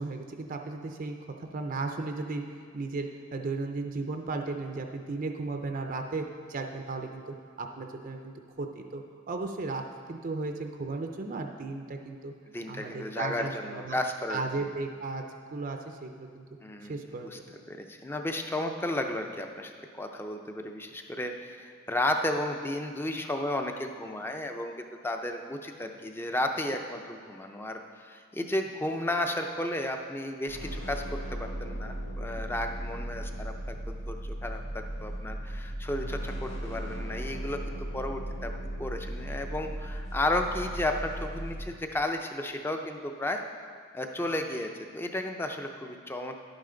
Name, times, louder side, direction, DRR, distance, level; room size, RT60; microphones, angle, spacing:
voice 1, 0.0-2.4 2.7-9.8 10.1-12.3 12.7-14.0 14.3-15.2 15.5-16.4 16.8-17.6, right 3 dB, 40° right, 4 dB, 0.5 m, -35 dB
voice 2, 12.5-14.7 16.6-16.9 17.2-17.4 17.7-38.5 38.8-43.4 43.9-46.4, left 1 dB, 10° left, 4 dB, 0.5 m, -33 dB
sound 1, 30.5-41.6, right 1 dB, 65° left, 2.0 m, -37 dB
11.0 x 9.1 x 3.8 m, 2.1 s
head